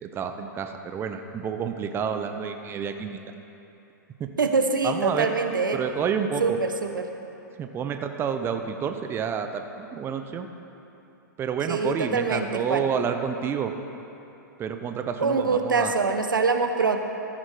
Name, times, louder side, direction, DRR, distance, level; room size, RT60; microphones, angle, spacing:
voice 1, 0.0-3.2 4.2-4.3 4.8-5.3 5.7-6.6 7.6-10.5 11.4-13.7 14.6-15.9, right 7 dB, 20° right, 6 dB, 0.6 m, -29 dB
voice 2, 4.4-5.8 6.4-7.1 11.7-12.8 15.2-17.0, right 4 dB, 85° right, 6 dB, 0.8 m, -24 dB
14.0 x 6.2 x 4.8 m, 2.9 s
hypercardioid pair, 110°, 11 cm